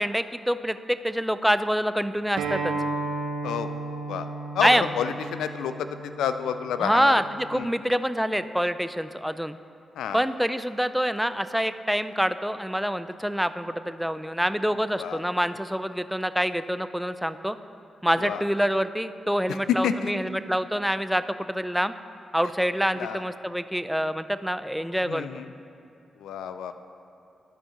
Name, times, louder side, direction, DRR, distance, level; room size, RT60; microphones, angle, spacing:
voice 1, 0.0-2.7 4.6-4.9 6.8-9.6 10.1-17.6 18.0-21.9 22.3-25.3, equal, 5° right, 12 dB, 0.4 m, -26 dB
Acoustic guitar, 2.4-7.6, right 3 dB, 85° right, 0.7 m, -34 dB
voice 2, 4.5-7.1 7.5-7.7 10.0-10.2 15.0-15.2 18.2-18.4 19.8-20.1 23.0-23.2 25.1-25.5 26.2-26.7, left 8 dB, 80° left, 10 dB, 0.3 m, -30 dB
12.0 x 5.1 x 3.7 m, 2.5 s
hypercardioid pair, 40°, 0 cm